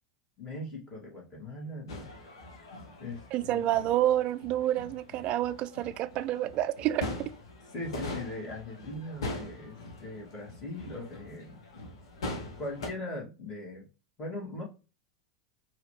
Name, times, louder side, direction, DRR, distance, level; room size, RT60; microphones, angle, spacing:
voice 1, 0.4-2.0 3.0-3.7 7.7-11.6 12.6-13.9 14.2-14.6, left 1 dB, 30° left, 2.5 m, -40 dB
sound 1, 1.9-12.9, left 2 dB, 70° left, 1.1 m, -42 dB
voice 2, 3.3-7.1, right 13 dB, 45° right, 0.4 m, -28 dB
4.7 x 3.1 x 3.2 m
figure-of-eight pair, 85°, 3 cm